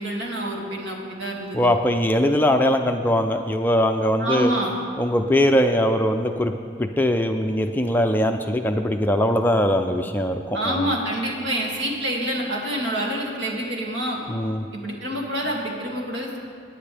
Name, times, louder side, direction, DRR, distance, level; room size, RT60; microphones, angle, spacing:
voice 1, 0.0-1.6 4.2-4.7 10.5-14.2 14.7-16.4, equal, 75° right, -2 dB, 2.4 m, -27 dB
voice 2, 1.5-4.5 5.0-6.5 6.8-10.9 14.3-14.7, equal, 10° left, 5 dB, 0.5 m, -21 dB
24.0 x 9.9 x 3.4 m, 2.3 s
head